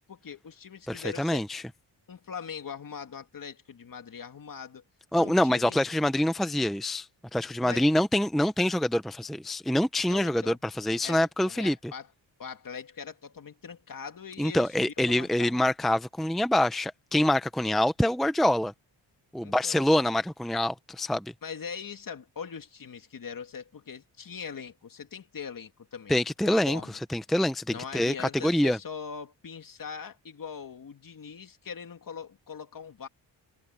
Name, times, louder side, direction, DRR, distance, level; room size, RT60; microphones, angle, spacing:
voice 1, 0.0-1.4 2.1-4.8 5.1-5.8 7.6-7.9 10.1-10.6 11.0-12.1 12.4-15.5 19.4-19.8 21.4-26.2 26.4-27.0 27.7-33.1, left 6 dB, 45° left, 2.4 m, -41 dB
voice 2, 0.9-1.6 5.1-7.1 7.3-11.8 14.4-18.7 19.3-21.3 26.1-26.8 27.1-28.8, left 1 dB, ahead, 0.7 m, -25 dB
wide cardioid pair, 130°, 44 cm